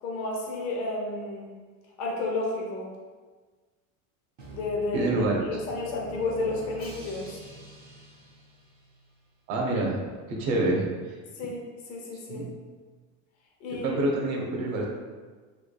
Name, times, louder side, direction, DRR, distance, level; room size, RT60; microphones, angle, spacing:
voice 1, 0.0-1.5 2.0-2.9 4.5-5.1 5.5-7.4 11.4-12.4 13.6-14.0, left 2 dB, 45° left, -1 dB, 0.6 m, -31 dB
Drum, 4.4-9.2, right 3 dB, 25° right, 0.4 m, -46 dB
voice 2, 4.9-5.4 9.5-10.0 10.3-10.9 12.3-12.5 13.7-14.9, right 2 dB, 80° right, -1 dB, 0.8 m, -26 dB
3.2 x 2.2 x 2.2 m, 1.4 s
supercardioid pair, 145°, 40 cm